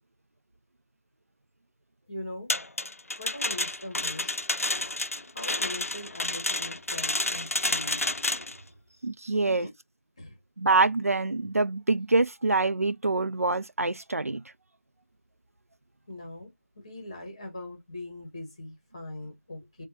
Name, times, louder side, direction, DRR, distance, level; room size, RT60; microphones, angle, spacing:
voice 1, 2.1-2.5 3.2-4.3 5.3-8.1 9.3-9.7 10.2-10.4 16.1-19.8, left 1 dB, 20° left, 0.9 m, -41 dB
sound 1, 2.5-8.6, left 2 dB, 75° left, 0.5 m, -30 dB
voice 2, 9.0-9.7 10.6-14.4, right 3 dB, 85° right, 0.4 m, -25 dB
6.1 x 2.2 x 2.7 m
figure-of-eight pair, 170°, 8 cm